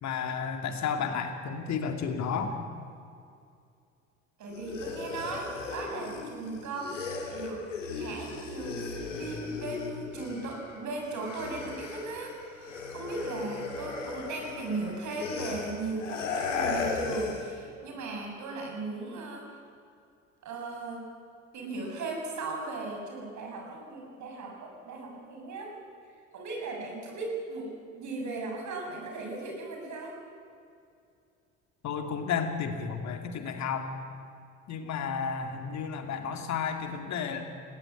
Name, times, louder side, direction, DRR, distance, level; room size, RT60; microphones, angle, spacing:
voice 1, 0.0-2.6 31.8-33.9 34.7-37.5, left 6 dB, 50° left, 5 dB, 2.6 m, -32 dB
voice 2, 4.4-7.0 7.3-7.6 7.9-12.3 12.6-19.5 20.4-21.0 21.5-25.7 26.3-30.2, right 3 dB, 50° right, 1 dB, 7.1 m, -37 dB
sound 1, 4.5-10.7 11.0-17.5, left 4 dB, 90° left, 2.8 m, -36 dB
19.5 x 18.5 x 9.7 m, 2.4 s
hypercardioid pair, 65°, 36 cm